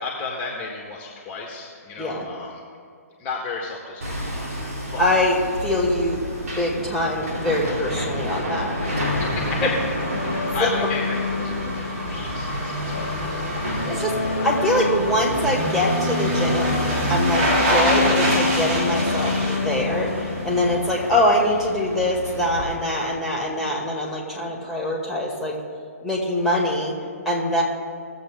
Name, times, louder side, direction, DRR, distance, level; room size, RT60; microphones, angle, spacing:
voice 1, 0.0-2.6 3.2-5.1 9.1-9.7 10.3-14.5, left 4 dB, 20° left, -1 dB, 1.5 m, -34 dB
Hammer, 4.0-22.6, equal, 65° right, 3.1 m, -31 dB
voice 2, 5.0-8.7 10.6-10.7 13.9-14.1 14.4-25.6 26.0-26.9 27.3-27.6, left 1 dB, 5° right, -4 dB, 2.3 m, -23 dB
sound 1, 8.8-20.7 21.1-21.2, right 1 dB, 40° right, 2.8 m, -27 dB
sound 2, 8.9-21.4, left 4 dB, 65° left, 1.1 m, -29 dB
19.0 x 7.7 x 3.8 m, 2.2 s
figure-of-eight pair, 135°, 9 cm